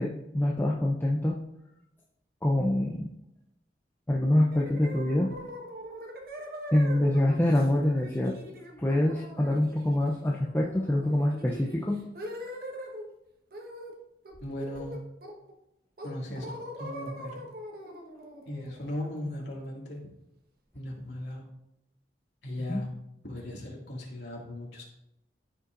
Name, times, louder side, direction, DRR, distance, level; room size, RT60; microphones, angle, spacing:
voice 1, 0.0-1.4 2.4-3.1 4.1-5.3 6.7-8.4 8.8-12.0 22.7-22.8, left 1 dB, 15° left, -2 dB, 0.6 m, -25 dB
sound 1, 4.5-13.0 13.5-14.0 14.3-15.5 16.0-19.7, equal, 55° right, 1.3 m, -42 dB
voice 2, 14.4-15.0 16.0-17.4 18.5-20.0 20.7-21.4 22.4-22.9 23.2-24.8, left 1 dB, 85° left, -3 dB, 2.3 m, -37 dB
13.5 x 5.5 x 2.6 m, 0.85 s
head